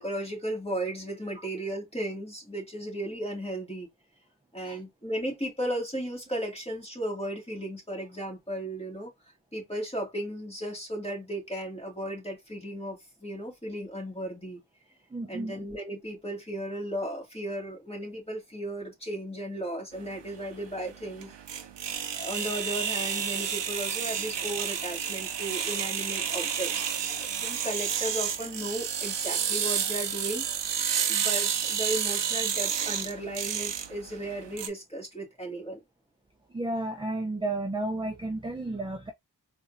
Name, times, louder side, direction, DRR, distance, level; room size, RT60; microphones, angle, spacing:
voice 1, 0.0-3.9 4.5-9.1 9.5-14.6 15.3-21.3 22.1-30.5 31.1-35.8, right 1 dB, 15° left, 2.0 m, -35 dB
voice 2, 15.1-15.5 36.5-39.1, right 2 dB, 10° right, 0.5 m, -32 dB
sound 1, 20.0-34.7, right 8 dB, 85° right, 0.6 m, -30 dB
4.1 x 2.6 x 2.5 m
wide cardioid pair, 50°, 42 cm